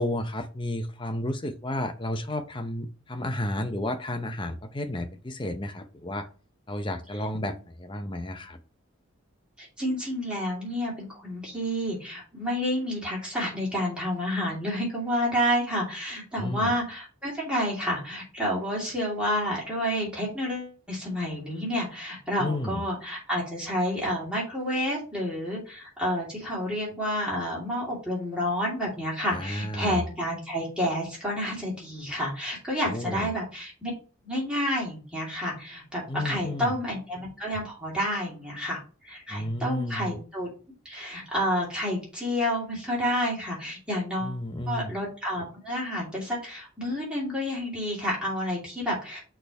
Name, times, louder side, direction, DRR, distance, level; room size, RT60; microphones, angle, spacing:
voice 1, 0.0-6.3 6.7-8.6 16.4-16.7 22.4-22.8 29.3-30.0 32.8-33.3 36.1-36.7 39.3-40.2 44.2-44.9, left 1 dB, 25° left, 8 dB, 0.6 m, -32 dB
voice 2, 9.6-33.9 34.2-40.5 40.8-44.4 44.7-49.2, equal, 5° right, -5 dB, 2.6 m, -29 dB
6.4 x 3.4 x 4.6 m, 0.36 s
head